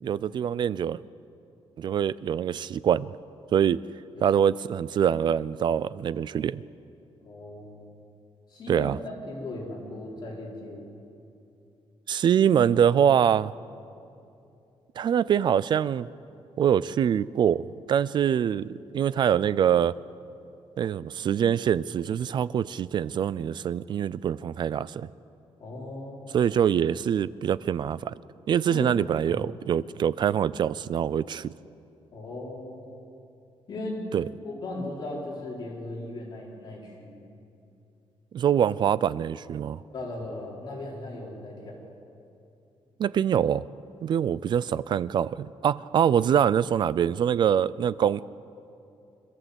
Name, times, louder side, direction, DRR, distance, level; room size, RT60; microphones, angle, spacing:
voice 1, 0.0-1.0 1.8-3.1 3.5-3.8 4.2-6.6 8.7-9.0 12.1-13.5 15.0-16.1 16.6-20.0 20.8-25.1 26.3-28.1 28.5-31.5 34.1-34.3 38.3-39.8 43.0-43.6 44.0-48.3, right 9 dB, 45° right, 19 dB, 0.4 m, -24 dB
voice 2, 7.2-7.9 8.5-11.0 25.6-26.3 28.6-28.9 29.2-29.4 32.1-32.8 33.7-34.0 34.4-37.2 39.9-41.8, left 2 dB, 45° left, -3 dB, 4.2 m, -37 dB
26.0 x 14.5 x 8.0 m, 2.7 s
wide cardioid pair, 180°, 10 cm